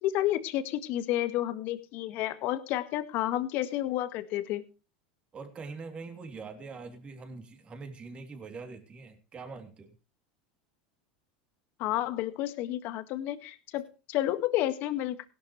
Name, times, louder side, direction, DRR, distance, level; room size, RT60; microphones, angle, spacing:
voice 1, 0.0-4.6 11.8-15.3, left 14 dB, 55° left, 1.8 m, -31 dB
voice 2, 5.3-9.9, right 4 dB, 30° right, 3.2 m, -43 dB
17.0 x 12.0 x 3.3 m
supercardioid pair, 110°, 4 cm